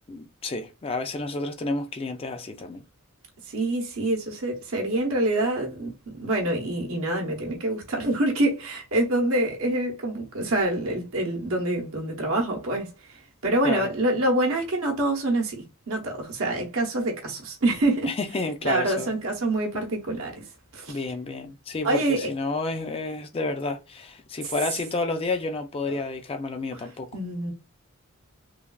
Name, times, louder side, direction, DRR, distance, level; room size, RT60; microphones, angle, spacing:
voice 1, 0.1-2.8 13.6-13.9 18.0-19.1 20.9-27.1, left 3 dB, 25° left, 0.4 m, -30 dB
voice 2, 3.5-18.1 18.6-20.4 20.7-21.0 21.8-22.3 26.7-26.8 27.1-27.5, right 1 dB, 70° right, 0.8 m, -26 dB
3.2 x 2.3 x 2.3 m
head